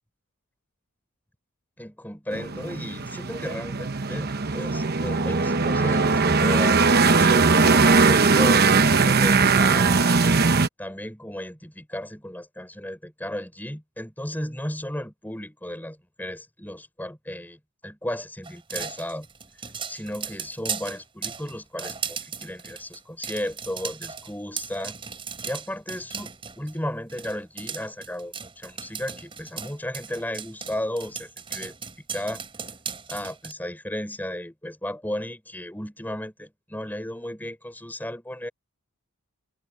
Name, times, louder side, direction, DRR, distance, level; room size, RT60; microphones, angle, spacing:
voice 1, 1.8-10.0 10.8-19.3 19.9-25.0 25.4-26.3 26.6-31.7 32.1-32.4 33.1-38.5, left 1 dB, 10° left, 3.9 m, -34 dB
sound 1, 2.3-10.7, right 4 dB, 45° right, 1.0 m, -20 dB
sound 2, 18.4-26.8 27.1-33.5, right 6 dB, 25° right, 3.8 m, -36 dB
head